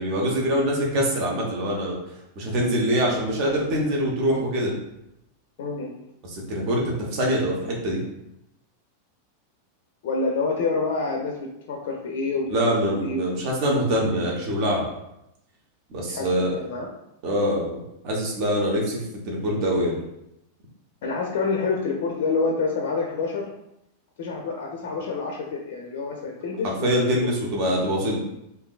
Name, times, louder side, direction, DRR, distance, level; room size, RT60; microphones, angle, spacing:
voice 1, 0.0-2.0 2.4-4.7 6.3-8.0 12.5-14.9 15.9-16.5 17.2-17.8 18.0-20.0 26.6-28.2, equal, 45° right, -2 dB, 0.9 m, -24 dB
voice 2, 5.6-6.0 10.0-13.3 16.1-16.9 21.0-23.5 24.2-27.1, left 4 dB, 55° left, 1 dB, 0.4 m, -28 dB
3.6 x 2.7 x 2.4 m, 0.84 s
figure-of-eight pair, 90°, 0 cm